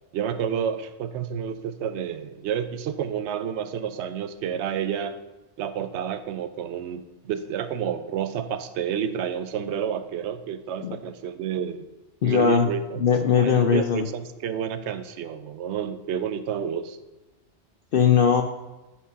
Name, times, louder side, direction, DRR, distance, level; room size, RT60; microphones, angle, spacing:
voice 1, 0.1-5.2 5.6-11.8 12.2-13.0 13.4-17.0, right 8 dB, 75° right, 12 dB, 0.9 m, -30 dB
voice 2, 12.2-12.7 13.0-14.1 17.9-18.4, left 7 dB, 60° left, 6 dB, 0.6 m, -19 dB
6.2 x 6.1 x 5.2 m, 1.1 s
omnidirectional pair, 1.2 m